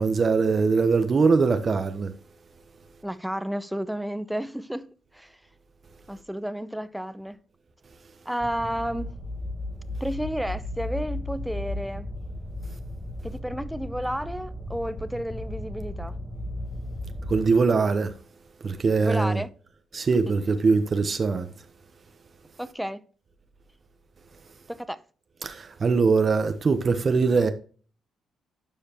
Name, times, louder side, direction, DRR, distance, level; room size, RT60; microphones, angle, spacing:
voice 1, 0.0-2.1 17.3-18.1 18.6-19.4 19.9-21.5 25.4-27.5, right 4 dB, 45° right, 1.0 m, -22 dB
voice 2, 3.0-5.4 6.1-7.4 8.3-9.1 10.0-12.1 13.2-16.2 19.0-19.5 22.6-23.0 24.7-25.0, equal, 5° right, 0.7 m, -32 dB
sound 1, 8.4-17.4, left 1 dB, 15° left, 1.3 m, -35 dB
12.0 x 4.9 x 3.0 m
supercardioid pair, 60°, 0 cm